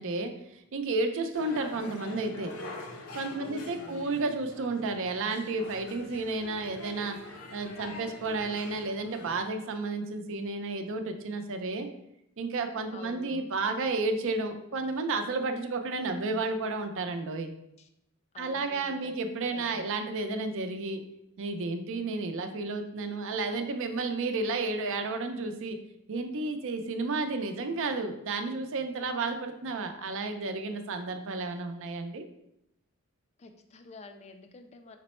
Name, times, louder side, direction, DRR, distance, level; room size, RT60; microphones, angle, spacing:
voice 1, 0.0-2.5 3.1-7.2 7.5-11.9 12.4-17.5 18.4-21.0 21.4-25.8 26.1-32.2, right 3 dB, 60° right, 7 dB, 0.5 m, -32 dB
sound 1, 1.3-9.4, left 2 dB, 70° left, 0.7 m, -45 dB
voice 2, 3.3-4.1 12.9-13.4 17.8-17.9 18.3-19.1 19.5-19.9 33.4-35.0, left 3 dB, 30° left, 7 dB, 0.3 m, -48 dB
5.0 x 2.1 x 4.2 m, 0.80 s
head